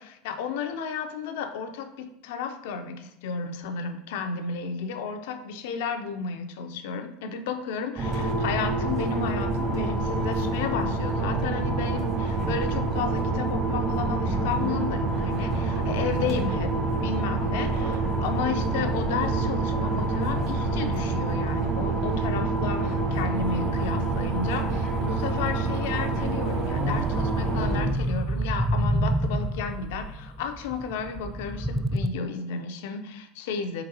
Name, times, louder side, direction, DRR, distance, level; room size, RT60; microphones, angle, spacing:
voice 1, 0.0-33.8, left 5 dB, 65° left, 7 dB, 0.4 m, -33 dB
sound 1, 8.0-27.8, right 3 dB, 40° right, 1.1 m, -27 dB
sound 2, 23.4-32.1, right 1 dB, 5° right, 0.3 m, -30 dB
3.9 x 3.8 x 2.6 m, 0.80 s
hypercardioid pair, 80°, 0 cm